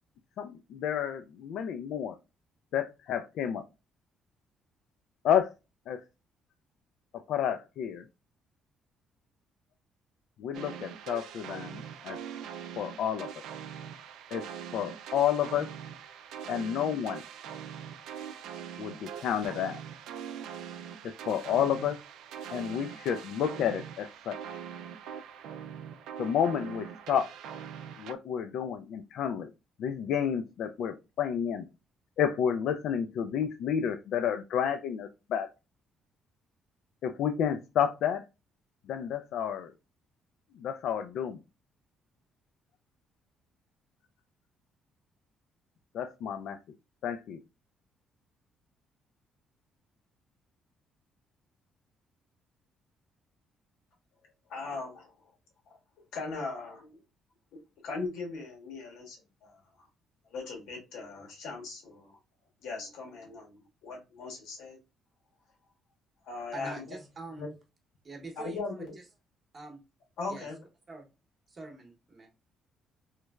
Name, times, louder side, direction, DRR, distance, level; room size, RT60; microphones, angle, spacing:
voice 1, 0.4-2.2 2.7-3.6 5.2-5.5 5.9-6.0 7.3-8.0 10.4-12.2 12.8-13.3 14.3-14.4 14.7-15.7 16.5-17.2 18.8-19.8 21.0-22.0 22.5-24.4 26.2-27.3 28.0-29.5 29.8-31.6 32.2-35.5 37.0-38.2 38.9-39.7 40.6-41.4 45.9-46.6 47.0-47.4, left 8 dB, 60° left, 8 dB, 0.3 m, -30 dB
sound 1, 10.5-28.1, right 8 dB, 80° right, 0.3 m, -42 dB
voice 2, 54.5-55.1 56.1-57.0 57.5-59.6 60.3-62.2 62.6-64.8 66.3-67.0 67.3-67.5 68.3-69.0 70.2-70.6, left 3 dB, 90° left, -1 dB, 1.5 m, -39 dB
voice 3, 66.5-67.5 68.0-69.1 69.5-69.8 70.3-70.5 70.9-71.1 71.5-72.3, right 3 dB, 25° right, 2 dB, 0.9 m, -44 dB
3.1 x 3.1 x 2.3 m, 0.27 s
cardioid pair, 180°, 0 cm